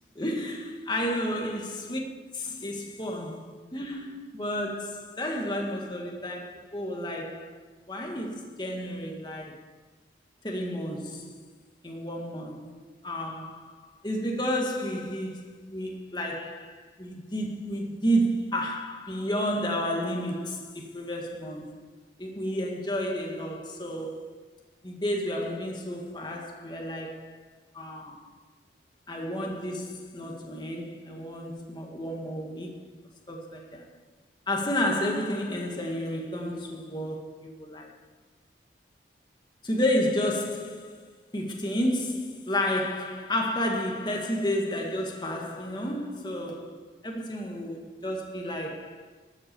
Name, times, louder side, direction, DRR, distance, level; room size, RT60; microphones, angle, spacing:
voice 1, 0.2-2.0 2.3-9.7 10.4-11.4 11.8-21.8 22.2-24.3 24.8-27.4 27.7-28.3 29.1-32.9 33.3-33.9 34.5-37.9 39.6-49.1, equal, 25° left, 1.9 m, -31 dB
13.0 x 8.6 x 7.0 m
head